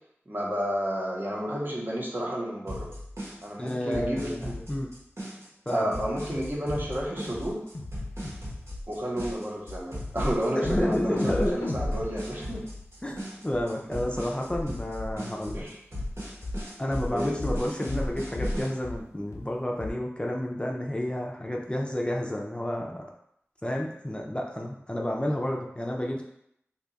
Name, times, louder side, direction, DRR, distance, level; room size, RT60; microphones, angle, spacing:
voice 1, 0.3-2.9 3.4-4.6 5.7-7.6 8.9-12.6 15.5-15.7 17.1-17.4, equal, 45° right, -3 dB, 0.8 m, -31 dB
sound 1, 2.7-18.7, equal, 75° right, 1.2 m, -38 dB
voice 2, 3.6-4.9 5.7-5.9 10.5-11.6 13.0-13.2 13.4-15.6 16.8-23.1 23.6-26.2, left 1 dB, 20° left, -1 dB, 0.4 m, -30 dB
sound 2, 6.3-6.5 6.8-7.0 7.3-7.5 7.7-8.0 8.2-8.4 8.7-8.8 9.2-9.3 9.7-9.8 10.2-10.4 10.6-10.8 11.1-13.2 13.5-13.6 14.0-14.1 14.5-14.6 15.0-15.1 15.5-15.6 15.9-16.1 16.4-16.6 16.9-17.1 17.4-17.6 17.9-18.1 18.4-18.6 18.8-19.0 19.3-19.4 19.8-19.9, left 1 dB, 85° left, 0.5 m, -33 dB
2.7 x 2.3 x 3.9 m, 0.73 s
wide cardioid pair, 50°, 5 cm